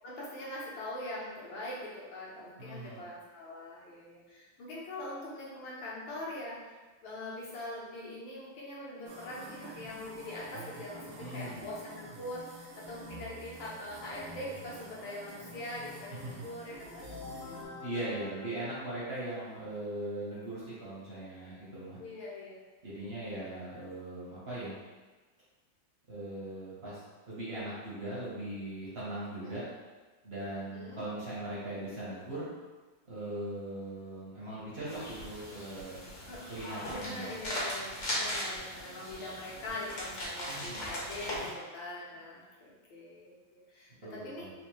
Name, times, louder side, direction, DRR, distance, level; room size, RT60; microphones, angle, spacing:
voice 1, 0.0-6.8 7.0-17.0 22.0-22.6 23.1-23.9 29.4-29.5 30.7-31.0 36.3-36.4 36.9-44.5, left 1 dB, 70° left, -6 dB, 1.6 m, -42 dB
voice 2, 2.6-3.0 11.2-11.6 16.2-16.3 17.8-22.0 22.8-24.8 26.1-27.0 27.3-29.6 30.2-32.5 33.1-36.0 36.5-37.3 40.5-40.8 44.0-44.5, right 1 dB, 45° right, -8 dB, 0.8 m, -39 dB
sound 1, 9.1-17.7, right 1 dB, 75° right, 1.4 m, -48 dB
sound 2, 17.0-19.7, left 2 dB, 90° left, 1.7 m, -47 dB
sound 3, 34.9-41.5, equal, 50° left, 1.0 m, -39 dB
4.2 x 2.6 x 3.1 m, 1.3 s
omnidirectional pair, 2.4 m